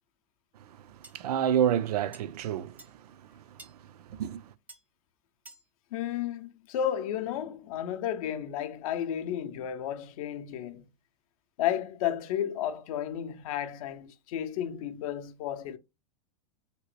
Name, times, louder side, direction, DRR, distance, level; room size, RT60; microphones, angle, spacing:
voice 1, 0.7-3.7 4.1-4.5, right 9 dB, 80° right, 0.4 m, -30 dB
sound 1, 1.0-1.2 2.1-2.2 2.8-2.9 3.6-3.8 4.7-4.8 5.5-5.7, right 3 dB, 10° right, 0.4 m, -49 dB
voice 2, 5.9-10.9 11.6-15.8, left 10 dB, 65° left, 0.5 m, -32 dB
2.9 x 2.9 x 3.1 m
hypercardioid pair, 125°, 20 cm